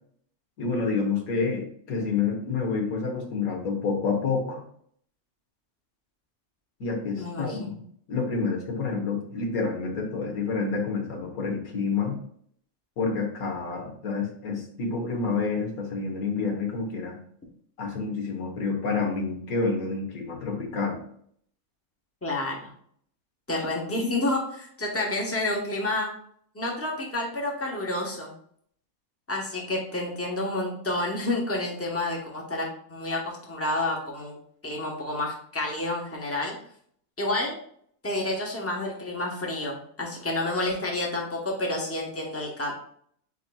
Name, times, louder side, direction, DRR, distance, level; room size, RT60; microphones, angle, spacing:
voice 1, 0.6-4.6 6.8-7.7 8.1-12.2 13.0-17.2 17.8-21.0, left 4 dB, 75° left, 1 dB, 1.6 m, -28 dB
voice 2, 7.2-7.8 22.2-22.7 23.5-26.1 26.5-28.3 29.3-34.4 34.6-36.6 37.2-37.6 38.0-42.7, left 2 dB, 10° left, -1 dB, 0.8 m, -29 dB
8.3 x 2.8 x 2.3 m, 0.62 s
omnidirectional pair, 1.5 m